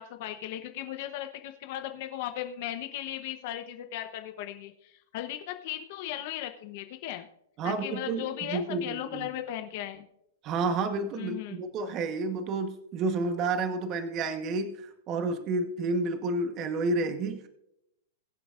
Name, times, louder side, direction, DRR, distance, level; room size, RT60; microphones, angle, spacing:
voice 1, 0.0-7.3 7.6-10.1 11.1-11.6, left 12 dB, 45° left, 7 dB, 0.9 m, -37 dB
voice 2, 7.6-9.3 10.4-17.5, right 3 dB, 30° right, 8 dB, 1.1 m, -30 dB
21.5 x 7.7 x 2.5 m, 0.80 s
supercardioid pair, 160°, 0 cm